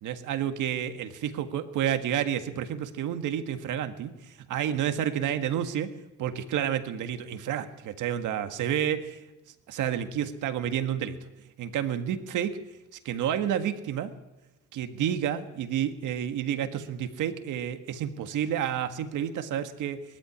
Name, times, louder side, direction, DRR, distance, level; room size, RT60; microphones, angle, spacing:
voice 1, 0.0-5.9 6.2-9.0 9.7-11.2 11.6-12.6 13.1-14.1 14.7-20.0, right 10 dB, 85° right, 8 dB, 1.8 m, -30 dB
20.0 x 14.0 x 9.8 m, 1.0 s
cardioid pair, 90°, 30 cm